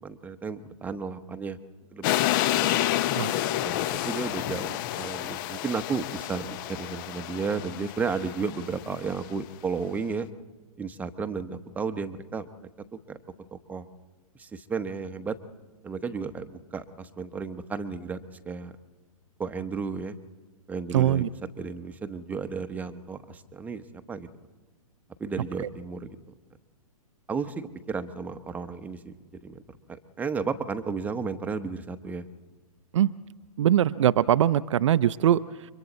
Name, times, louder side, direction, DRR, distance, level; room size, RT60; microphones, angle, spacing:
voice 1, 0.0-1.6 1.9-2.1 2.5-2.8 3.6-10.3 10.8-12.7 13.1-13.2 13.5-13.8 14.4-15.4 15.8-18.2 18.4-18.7 19.4-20.2 20.7-21.2 21.6-24.3 25.2-26.2 27.3-29.2 29.4-29.6 30.2-32.2, right 5 dB, 10° right, 8 dB, 0.9 m, -33 dB
sound 1, 2.0-9.1, left 14 dB, 35° left, 0.7 m, -29 dB
voice 2, 20.9-21.3 25.6-25.7 32.9-33.1 33.6-35.7, right 11 dB, 55° right, 14 dB, 0.6 m, -22 dB
30.0 x 24.0 x 4.1 m, 1.3 s
figure-of-eight pair, 120°, 19 cm